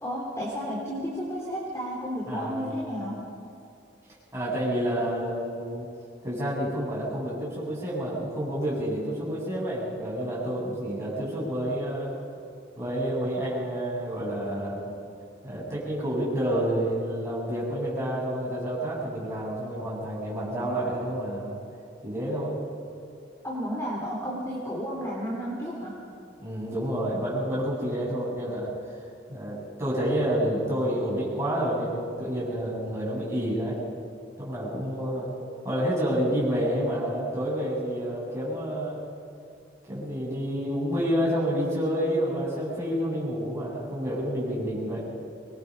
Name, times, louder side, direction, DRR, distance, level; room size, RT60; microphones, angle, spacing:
voice 1, 0.0-3.2 23.4-25.9, equal, 15° left, -4 dB, 3.2 m, -32 dB
voice 2, 2.3-2.7 4.3-5.9 6.2-12.1 12.8-14.9 15.4-21.6 22.0-22.6 26.4-28.7 29.3-33.8 34.4-35.3 35.6-39.0 39.9-45.0, equal, 15° right, -7 dB, 7.6 m, -29 dB
24.5 x 21.0 x 5.5 m, 2.4 s
head